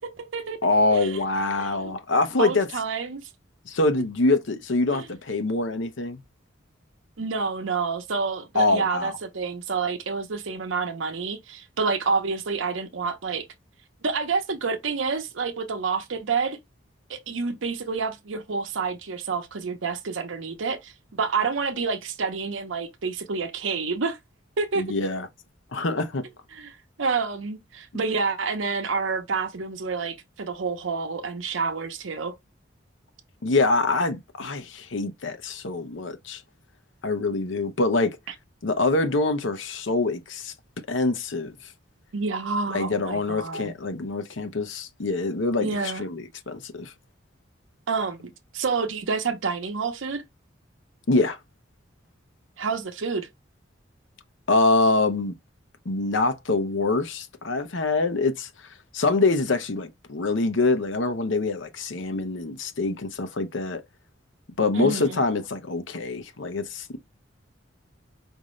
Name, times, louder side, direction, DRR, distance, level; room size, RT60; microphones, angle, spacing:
voice 1, 0.0-0.6 0.9-1.2 1.6-1.9 2.4-3.2 4.9-5.1 7.2-13.5 14.0-16.6 17.1-20.9 21.2-24.2 24.6-24.8 26.5-32.3 42.1-43.7 45.6-46.0 47.9-50.2 52.6-53.3 64.7-65.2, right 4 dB, 85° right, 0.7 m, -28 dB
voice 2, 0.6-2.7 3.7-6.2 8.5-9.1 24.8-25.3 25.7-26.2 33.4-36.4 37.0-38.2 38.6-40.5 40.9-41.5 42.7-46.9 51.1-51.4 54.5-55.3 55.9-58.5 58.9-63.8 64.6-67.0, left 3 dB, 80° left, 0.7 m, -25 dB
5.0 x 2.6 x 3.1 m
head